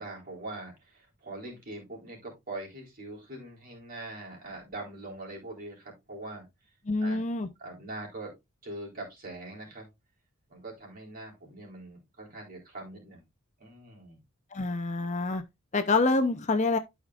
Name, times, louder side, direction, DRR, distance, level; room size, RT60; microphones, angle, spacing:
voice 1, 0.0-6.5 7.0-7.2 7.6-8.3 8.6-9.9 10.5-13.2 13.6-14.2, right 2 dB, 40° right, 3.9 m, -42 dB
voice 2, 6.9-7.5 14.5-15.4 15.7-16.8, left 3 dB, 35° left, 0.7 m, -26 dB
12.5 x 5.0 x 2.4 m
head